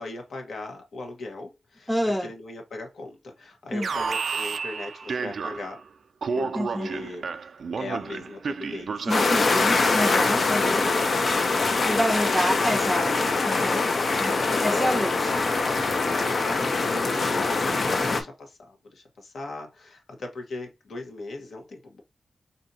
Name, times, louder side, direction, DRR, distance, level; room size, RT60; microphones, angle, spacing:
voice 1, 0.0-5.8 6.3-7.3 7.8-9.1 10.3-12.2 13.4-15.5 16.0-22.0, left 2 dB, 80° left, 1.2 m, -38 dB
voice 2, 1.9-2.3 3.7-3.9 6.5-6.9 9.0-10.9 11.9-13.9 14.2-14.4 14.6-15.3, equal, 5° left, 0.7 m, -28 dB
Alarm, 3.8-5.8 6.2-9.5, right 5 dB, 65° right, 0.3 m, -31 dB
sound 1, 9.1-18.2, left 3 dB, 45° left, 0.6 m, -23 dB
4.1 x 2.7 x 2.7 m
wide cardioid pair, 170°, 0 cm